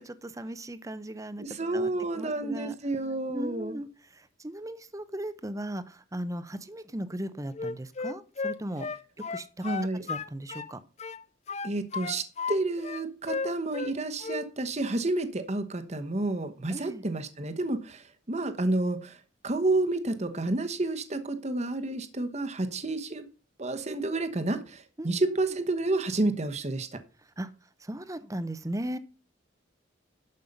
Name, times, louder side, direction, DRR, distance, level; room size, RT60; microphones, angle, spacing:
voice 1, 0.0-1.4 1.7-2.8 3.3-3.9 4.1-8.9 9.3-9.5 10.0-10.8 16.7-17.0 25.0-25.1 27.4-27.5 27.8-29.0, right 1 dB, 15° right, 13 dB, 0.7 m, -37 dB
voice 2, 1.4-3.8 9.6-10.0 11.6-19.2 19.4-23.2 23.6-26.9, right 2 dB, 35° right, 9 dB, 1.1 m, -30 dB
Wind instrument woodwind instrument, 7.5-10.7 11.0-12.6 12.8-13.9 14.2-14.5, left 4 dB, 35° left, 0.5 m, -34 dB
12.0 x 5.5 x 5.4 m, 0.36 s
head